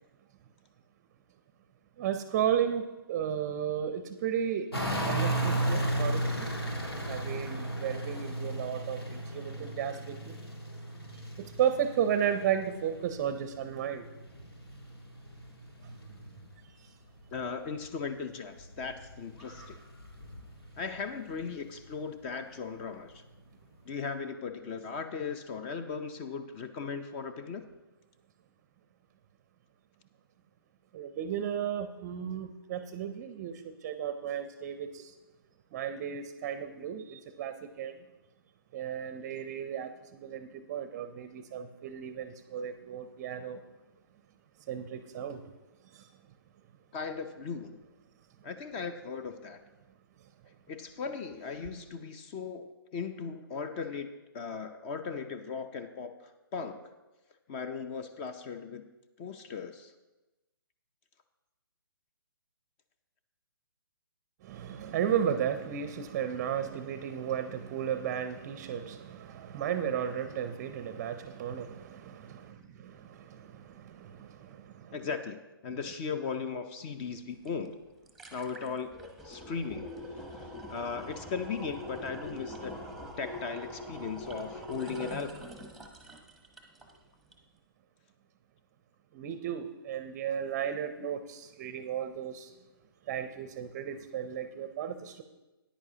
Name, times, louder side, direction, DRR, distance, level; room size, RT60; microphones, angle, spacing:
voice 1, 2.0-4.7 5.1-6.5 7.1-10.3 11.4-14.1 30.9-35.1 35.7-37.9 38.7-43.6 44.7-45.4 45.9-46.0 64.4-75.0 89.1-92.5 93.1-95.2, right 9 dB, 30° right, 10 dB, 0.5 m, -34 dB
sound 1, 4.7-16.7 17.0-21.9 22.5-22.6, right 1 dB, 90° left, 1.9 m, -35 dB
voice 2, 17.3-19.8 20.8-23.2 23.9-27.7 46.9-47.8 48.4-49.6 50.7-54.1 54.3-56.9 57.5-58.8 59.2-59.9 74.9-75.4 75.6-77.8 78.3-78.9 79.2-82.7 83.2-85.3, left 5 dB, 25° left, 9 dB, 0.5 m, -37 dB
sound 2, 77.5-77.6 77.9-87.0 87.3-87.4, left 1 dB, ahead, 0.9 m, -43 dB
13.5 x 10.0 x 2.8 m, 1.1 s
figure-of-eight pair, 135°, 13 cm